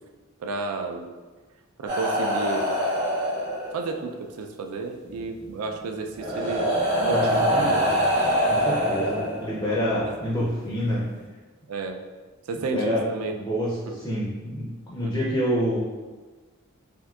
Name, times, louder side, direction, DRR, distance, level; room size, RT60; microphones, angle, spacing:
voice 1, 0.4-1.1 1.8-2.8 3.7-6.7 7.0-8.0 8.9-9.1 11.7-12.0 12.5-13.3 13.9-14.0 15.0-15.2, right 4 dB, 85° right, 5 dB, 0.3 m, -32 dB
sound 1, 1.9-4.0 5.3-5.5 6.2-9.8 10.9-11.0, equal, 40° right, 1.0 m, -24 dB
voice 2, 7.1-7.9 8.4-11.1 12.5-13.0 13.3-15.8, equal, 15° left, -6 dB, 0.4 m, -27 dB
3.6 x 2.6 x 2.3 m, 1.3 s
head